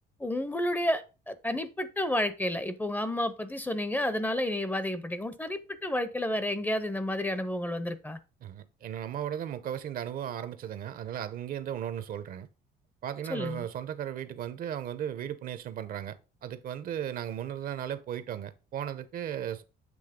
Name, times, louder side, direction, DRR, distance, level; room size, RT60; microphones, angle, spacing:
voice 1, 0.2-8.2 13.3-13.7, left 1 dB, 10° left, 0.6 m, -31 dB
voice 2, 8.4-12.5 13.0-19.6, right 10 dB, 60° right, 0.7 m, -36 dB
7.8 x 3.1 x 5.0 m
cardioid pair, 110°, 17 cm